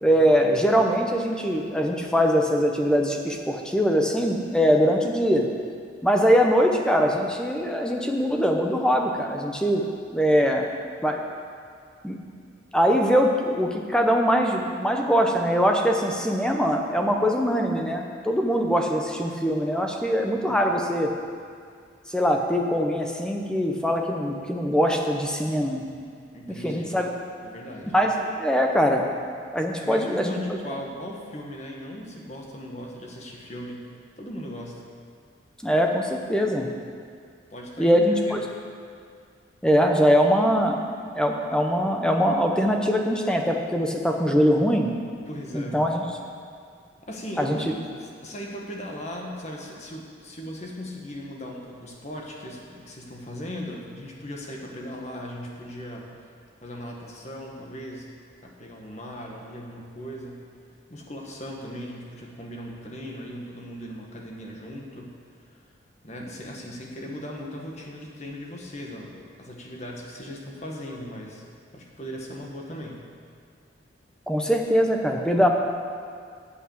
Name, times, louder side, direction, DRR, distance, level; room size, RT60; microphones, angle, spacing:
voice 1, 0.0-5.5 6.0-9.9 10.1-10.7 11.0-11.2 12.0-12.2 12.7-21.1 22.1-25.9 26.6-27.1 27.9-29.0 29.5-30.6 35.6-36.7 37.8-38.4 39.6-44.9 45.5-46.0 47.4-47.6 74.3-75.5, equal, 5° left, 2 dB, 0.8 m, -22 dB
voice 2, 26.3-27.0 27.4-27.9 29.8-33.9 34.2-34.8 37.5-38.4 45.3-45.9 47.0-56.1 56.6-58.1 58.4-60.5 60.9-65.2 66.0-71.4 71.7-73.0, equal, 35° left, -1 dB, 1.5 m, -38 dB
8.5 x 8.0 x 7.7 m, 2.2 s
head